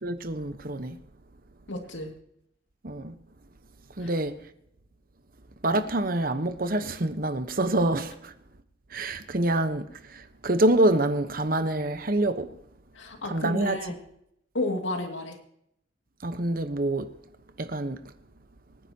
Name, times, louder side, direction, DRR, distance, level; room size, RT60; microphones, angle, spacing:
voice 1, 0.0-1.0 2.8-3.1 4.0-4.3 5.6-8.3 8.9-12.5 13.3-13.8 16.2-17.1 17.6-18.0, right 1 dB, 50° right, 1.1 m, -26 dB
voice 2, 1.7-2.1 4.0-4.1 12.9-14.0 14.5-15.4, left 1 dB, 85° left, 2.4 m, -31 dB
26.0 x 10.0 x 2.9 m
head